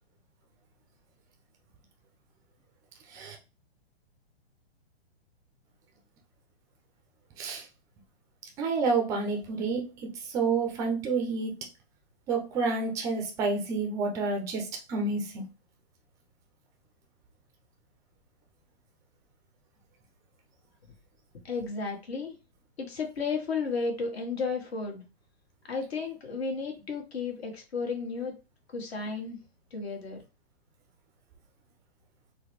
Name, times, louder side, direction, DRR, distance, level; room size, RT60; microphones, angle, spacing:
voice 1, 8.6-11.5 12.3-15.4, right 4 dB, 10° right, 2 dB, 0.4 m, -29 dB
voice 2, 21.4-22.3 22.8-25.0 25.7-28.3 28.7-29.4 29.7-30.2, left 4 dB, 70° left, 1 dB, 1.4 m, -33 dB
3.8 x 2.1 x 3.0 m, 0.30 s
hypercardioid pair, 130°, 33 cm